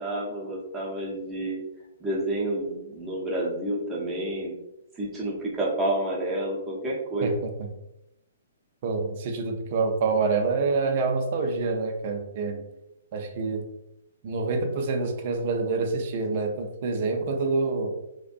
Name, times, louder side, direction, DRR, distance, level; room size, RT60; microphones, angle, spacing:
voice 1, 0.0-1.6 2.0-4.5 5.0-7.4, right 1 dB, 15° right, -4 dB, 0.7 m, -29 dB
voice 2, 7.2-7.7 8.8-12.6 13.1-13.6 14.2-17.9, right 4 dB, 45° right, 4 dB, 0.4 m, -27 dB
2.5 x 2.1 x 2.5 m, 0.89 s
hypercardioid pair, 130°, 0 cm